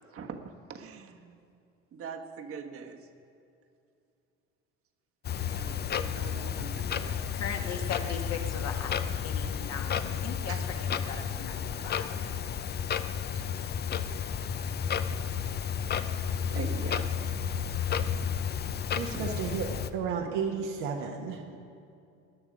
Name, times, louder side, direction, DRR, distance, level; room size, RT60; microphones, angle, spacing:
voice 1, 0.1-1.4 1.9-3.1 5.4-7.2 10.5-10.6 13.3-13.4 15.8-15.9 16.5-17.1 19.1-19.3, right 6 dB, 40° right, 4 dB, 1.4 m, -42 dB
Clock, 5.2-19.9, left 8 dB, 30° left, 0.6 m, -32 dB
voice 2, 7.3-9.0 9.2-12.2, left 6 dB, 50° left, 3 dB, 1.7 m, -39 dB
voice 3, 18.9-21.6, right 6 dB, 75° right, 0 dB, 1.6 m, -33 dB
19.0 x 9.7 x 5.2 m, 2.6 s
supercardioid pair, 100°, 33 cm